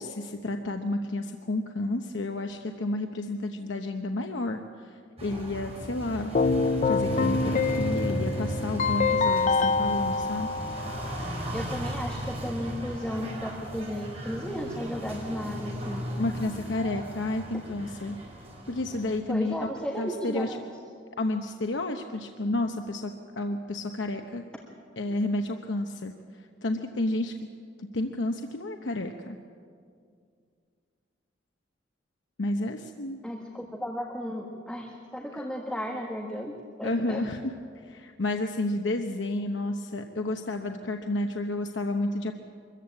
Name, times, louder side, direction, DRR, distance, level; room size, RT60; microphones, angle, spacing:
voice 1, 0.0-4.6 5.2-6.4 6.9-10.5 16.2-18.2 18.7-19.5 20.0-20.6 21.2-24.4 25.0-26.1 26.6-27.3 27.8-29.4 32.4-33.2 35.3-35.4 36.8-37.5 37.9-42.3, left 2 dB, 80° left, 5 dB, 0.9 m, -31 dB
sound 1, 5.2-19.2, equal, 35° right, 4.6 m, -36 dB
Keyboard (musical), 6.3-11.3, left 4 dB, 40° left, 0.5 m, -26 dB
voice 2, 11.5-16.0 19.3-20.6 33.2-37.3, equal, 5° left, 0 dB, 1.6 m, -34 dB
24.0 x 14.5 x 8.7 m, 2.2 s
head